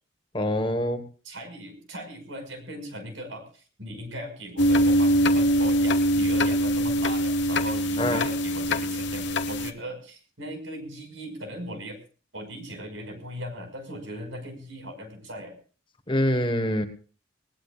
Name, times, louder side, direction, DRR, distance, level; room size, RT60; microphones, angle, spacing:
voice 1, 0.3-1.0 8.0-8.2 16.1-16.9, left 1 dB, 25° left, 7 dB, 1.3 m, -25 dB
voice 2, 1.2-12.0 12.3-15.6, equal, 75° right, 6 dB, 5.5 m, -38 dB
sound 1, 4.6-9.7, equal, 60° left, 1.2 m, -23 dB
20.0 x 19.0 x 2.4 m, 0.39 s
head